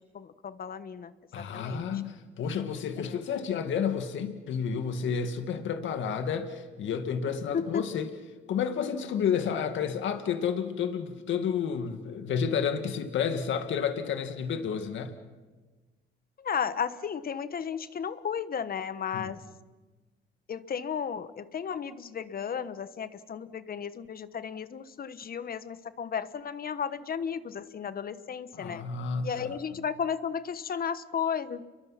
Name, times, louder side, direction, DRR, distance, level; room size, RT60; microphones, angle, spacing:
voice 1, 0.1-1.8 3.0-3.2 7.5-7.8 16.4-19.4 20.5-28.8 29.2-31.6, left 7 dB, 50° left, 13 dB, 1.2 m, -34 dB
voice 2, 1.3-8.1 8.5-15.1 19.1-19.3 28.5-29.6, left 7 dB, 75° left, 7 dB, 2.1 m, -31 dB
30.0 x 23.0 x 5.8 m, 1.3 s
cardioid pair, 90°, 20 cm